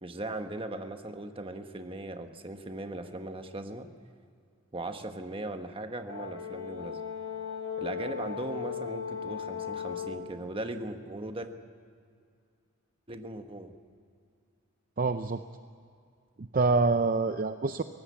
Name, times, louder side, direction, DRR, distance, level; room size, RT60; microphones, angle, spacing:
voice 1, 0.0-3.9 4.7-7.0 7.8-11.5 13.1-13.7, right 2 dB, 25° right, 7 dB, 1.3 m, -38 dB
Brass instrument, 6.1-10.3, left 7 dB, 75° left, 3.5 m, -37 dB
voice 2, 15.0-15.4 16.4-17.8, right 3 dB, 40° right, 9 dB, 0.6 m, -26 dB
23.0 x 17.5 x 8.5 m, 2.3 s
head